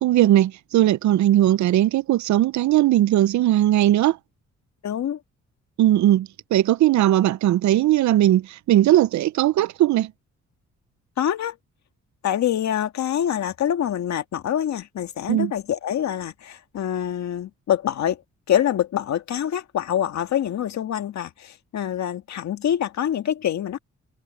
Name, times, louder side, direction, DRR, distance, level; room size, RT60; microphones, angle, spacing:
voice 1, 0.0-4.2 5.8-10.1 15.3-15.5, right 13 dB, 70° right, 0.6 m, -19 dB
voice 2, 4.8-5.2 11.2-11.6 12.2-18.2 18.5-23.8, left 10 dB, 65° left, 2.0 m, -25 dB
cardioid pair, 90°, 30 cm